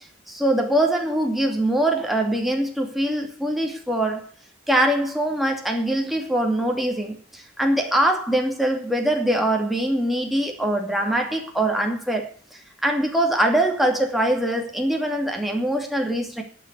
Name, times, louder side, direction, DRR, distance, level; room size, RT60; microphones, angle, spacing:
voice 1, 0.3-4.3 4.7-16.4, right 1 dB, ahead, 2.6 m, -23 dB
11.5 x 7.7 x 8.2 m
head